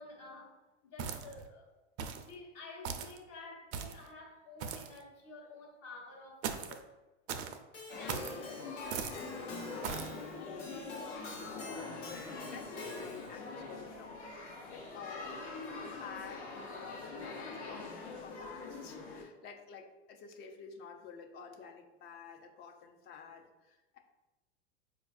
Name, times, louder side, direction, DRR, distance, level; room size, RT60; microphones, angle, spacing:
voice 1, 0.0-1.7 2.1-6.9 7.9-9.5, left 3 dB, 45° left, 0.9 m, -51 dB
sound 1, 1.0-1.5 2.0-2.3 2.8-3.2 3.7-4.1 4.6-5.0 6.4-6.8 7.3-7.6 8.1-8.4 8.9-9.2 9.8-10.1, right 7 dB, 70° right, 0.5 m, -39 dB
Keyboard (musical), 7.7-13.4, left 1 dB, 90° left, 1.1 m, -48 dB
sound 2, 7.9-19.2, left 3 dB, 70° left, 0.9 m, -44 dB
voice 2, 9.0-24.0, left 6 dB, 30° left, 0.4 m, -51 dB
4.5 x 2.3 x 2.4 m
hypercardioid pair, 115°, 35 cm